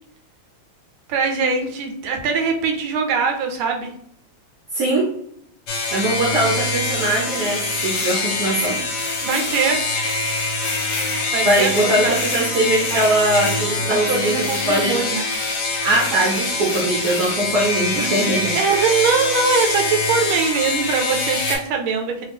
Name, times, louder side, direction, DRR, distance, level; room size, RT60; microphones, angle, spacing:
voice 1, 1.1-3.9 9.2-9.8 11.3-12.1 12.9-13.0 13.9-15.3 18.5-22.2, right 5 dB, 85° right, 2 dB, 1.5 m, -22 dB
voice 2, 4.7-5.1 5.9-8.8 11.4-15.0 15.8-18.6, right 1 dB, 65° right, -3 dB, 1.0 m, -21 dB
sound 1, 5.7-21.6, left 3 dB, 60° left, 1.3 m, -24 dB
3.3 x 2.4 x 3.3 m, 0.69 s
omnidirectional pair, 2.2 m